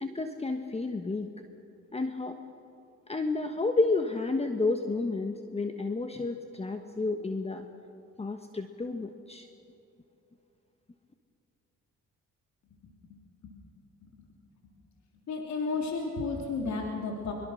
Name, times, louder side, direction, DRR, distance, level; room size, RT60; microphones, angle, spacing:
voice 1, 0.0-1.3 1.9-2.4 3.1-7.7 8.2-9.5, left 3 dB, 20° left, 6 dB, 1.3 m, -31 dB
voice 2, 15.3-17.3, left 4 dB, 65° left, 0 dB, 3.1 m, -33 dB
23.5 x 22.5 x 6.4 m, 2.7 s
cardioid pair, 90°, 30 cm